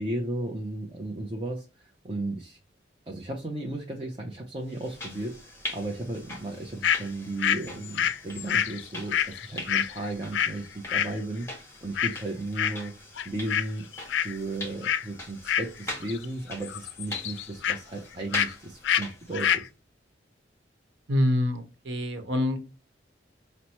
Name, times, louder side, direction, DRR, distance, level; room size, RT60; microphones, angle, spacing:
voice 1, 0.0-2.6 3.1-12.9 13.2-19.7, right 2 dB, 25° right, 0.6 m, -35 dB
sound 1, 4.7-19.6, left 1 dB, 15° left, 0.9 m, -42 dB
sound 2, 6.8-7.0 7.4-10.6 10.9-11.1 11.9-12.2 12.6-12.9 13.2-13.7 13.9-14.4 14.8-15.1 15.5-16.2 16.5-17.8 18.3-18.5 18.8-19.0 19.3-19.7, left 9 dB, 80° left, 0.3 m, -27 dB
voice 2, 21.1-22.6, left 1 dB, 85° right, 1.0 m, -26 dB
5.6 x 2.1 x 2.9 m
head